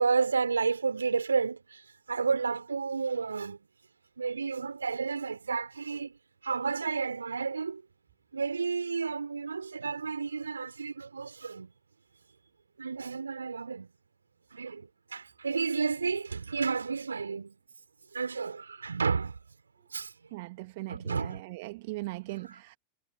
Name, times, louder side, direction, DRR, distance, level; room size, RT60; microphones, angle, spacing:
voice 1, 0.0-3.6 4.2-6.2 6.4-7.8 8.3-11.7 12.8-13.9 14.5-17.6 18.1-19.4 19.9-20.1 20.9-21.4, right 5 dB, 75° right, 3.3 m, -31 dB
voice 2, 20.3-22.8, right 22 dB, 50° right, 1.6 m, -39 dB
figure-of-eight pair, 90°, 0 cm